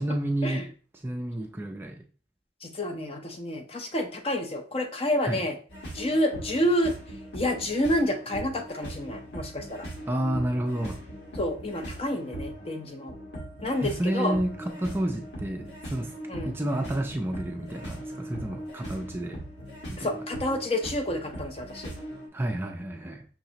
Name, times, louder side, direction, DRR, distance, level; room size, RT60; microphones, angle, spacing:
voice 1, 0.0-2.0 5.2-5.5 10.1-11.0 13.8-19.4 19.9-20.1 22.3-23.3, right 1 dB, 15° right, 0.4 m, -30 dB
voice 2, 2.6-5.6 5.9-6.9 7.3-9.9 11.4-13.1 13.6-14.3 16.3-16.6 20.0-21.9, left 1 dB, 35° left, 0.6 m, -29 dB
sound 1, 5.7-22.3, right 1 dB, 80° left, 1.5 m, -40 dB
5.7 x 2.9 x 2.8 m
head